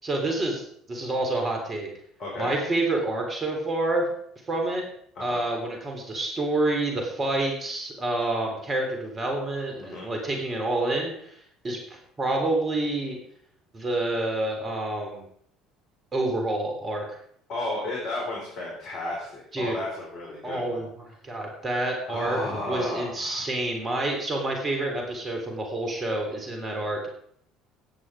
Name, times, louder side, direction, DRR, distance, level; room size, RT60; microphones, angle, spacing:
voice 1, 0.0-1.9 2.4-4.1 4.5-4.8 5.2-11.4 11.6-11.8 12.2-13.2 13.7-15.2 16.1-17.2 19.5-19.8 20.4-20.9 21.2-22.4 22.6-27.1, right 2 dB, 30° right, 2 dB, 3.5 m, -28 dB
voice 2, 2.2-2.5 5.1-5.4 9.8-10.1 17.5-20.8 22.1-23.4, left 2 dB, 50° left, -4 dB, 4.6 m, -33 dB
15.0 x 10.0 x 4.9 m, 0.67 s
figure-of-eight pair, 60°, 0 cm